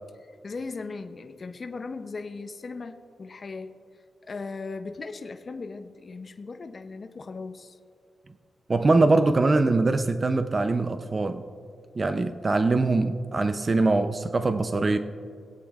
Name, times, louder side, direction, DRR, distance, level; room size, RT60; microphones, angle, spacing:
voice 1, 0.4-3.7 4.2-7.8, left 4 dB, 40° left, 7 dB, 0.6 m, -38 dB
voice 2, 8.7-11.4 12.0-15.0, right 3 dB, 35° right, 8 dB, 0.5 m, -23 dB
22.5 x 8.3 x 2.4 m, 2.3 s
cardioid pair, 105°, 0 cm